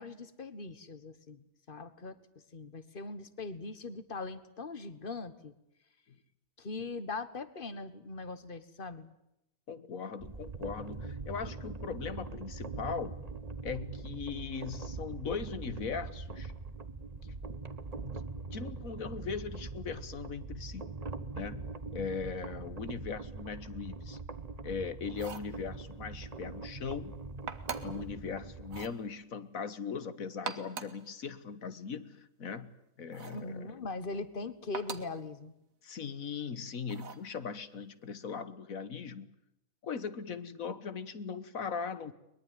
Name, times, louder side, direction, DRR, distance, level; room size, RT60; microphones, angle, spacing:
voice 1, 0.0-1.4 1.7-2.2 2.5-5.5 6.6-9.1 33.3-35.5, left 3 dB, 40° left, 14 dB, 1.6 m, -41 dB
voice 2, 9.7-13.2 13.6-16.5 17.2-17.4 18.0-18.2 18.5-20.9 21.3-21.6 21.9-24.2 24.6-27.2 27.8-32.7 33.0-33.8 35.8-39.3 39.8-42.1, left 6 dB, 85° left, 14 dB, 1.8 m, -39 dB
sound 1, 10.2-28.9, right 3 dB, 30° right, 1.2 m, -42 dB
sound 2, 25.1-25.5 27.5-28.0 28.6-29.0 30.3-31.0 33.1-33.5 34.7-35.2 36.9-37.3, right 6 dB, 85° right, 1.8 m, -42 dB
22.5 x 21.5 x 9.3 m, 0.82 s
omnidirectional pair, 1.4 m